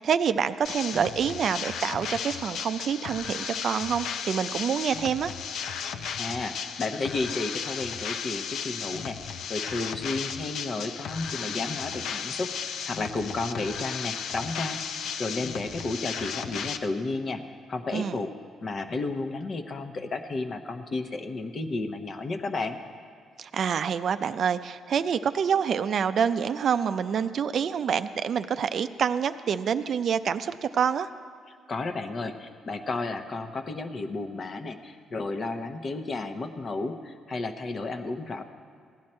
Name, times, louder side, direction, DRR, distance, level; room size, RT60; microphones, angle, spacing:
voice 1, 0.0-5.3 17.9-18.2 23.4-31.1, right 7 dB, 60° right, 11 dB, 0.4 m, -27 dB
sound 1, 0.7-16.8, left 7 dB, 75° left, 0.5 m, -35 dB
voice 2, 5.9-14.8 15.2-17.4 17.7-18.3 18.6-22.8 31.5-38.4, left 3 dB, 45° left, 7 dB, 0.9 m, -32 dB
16.5 x 10.5 x 4.4 m, 2.1 s
cardioid pair, 90°, 0 cm